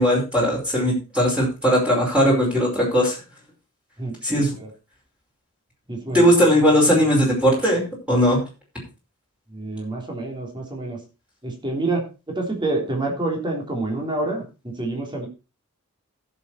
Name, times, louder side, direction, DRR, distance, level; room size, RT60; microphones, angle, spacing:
voice 1, 0.0-3.2 4.2-4.5 6.1-7.8 8.1-8.4, equal, 5° right, -3 dB, 5.1 m, -18 dB
voice 2, 4.0-4.7 5.9-6.3 9.5-11.0 11.4-15.3, right 2 dB, 20° right, 0 dB, 3.4 m, -28 dB
15.0 x 7.1 x 4.3 m, 0.30 s
head